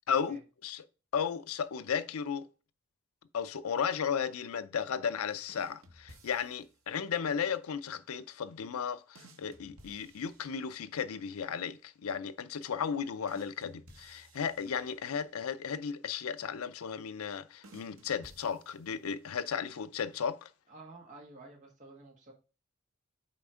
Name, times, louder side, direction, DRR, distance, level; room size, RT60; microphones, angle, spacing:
voice 1, 0.1-0.8 1.1-2.5 3.3-20.5, left 7 dB, 90° left, 0.5 m, -35 dB
sound 1, 5.5-6.9 9.1-11.1 13.3-15.4 17.6-19.2, right 1 dB, 75° right, 1.1 m, -58 dB
voice 2, 20.7-22.3, right 2 dB, 35° right, 1.6 m, -51 dB
5.8 x 4.2 x 4.9 m
head